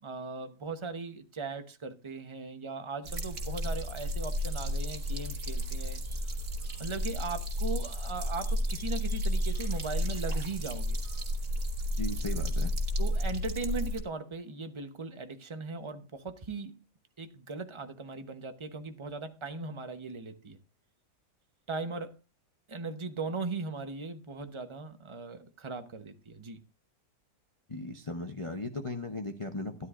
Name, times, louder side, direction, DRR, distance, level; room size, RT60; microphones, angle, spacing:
voice 1, 0.0-6.0 6.8-11.0 13.0-16.8 17.2-20.6 21.7-22.2 22.7-26.6, right 3 dB, 25° right, 0.8 m, -38 dB
sound 1, 3.1-14.0, equal, 55° right, 2.2 m, -32 dB
voice 2, 12.0-12.7 27.7-29.9, left 2 dB, 30° left, 0.6 m, -37 dB
13.0 x 11.0 x 2.5 m
omnidirectional pair, 1.7 m